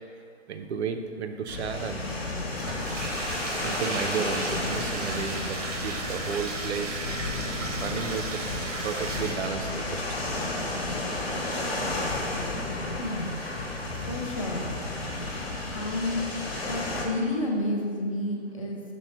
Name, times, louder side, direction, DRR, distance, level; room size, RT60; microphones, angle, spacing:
voice 1, 0.5-2.1 3.6-7.0 7.7-8.4 8.8-10.1, right 6 dB, 65° right, 6 dB, 0.5 m, -33 dB
sound 1, 1.5-17.0, left 2 dB, 55° left, 1.0 m, -32 dB
Bathtub (filling or washing), 2.5-9.8, right 3 dB, 90° right, 0.8 m, -35 dB
voice 2, 13.0-13.4 14.1-14.7 15.7-16.2 16.6-18.8, left 1 dB, 30° left, -1 dB, 0.4 m, -30 dB
6.1 x 2.1 x 4.2 m, 2.2 s
figure-of-eight pair, 140°, 36 cm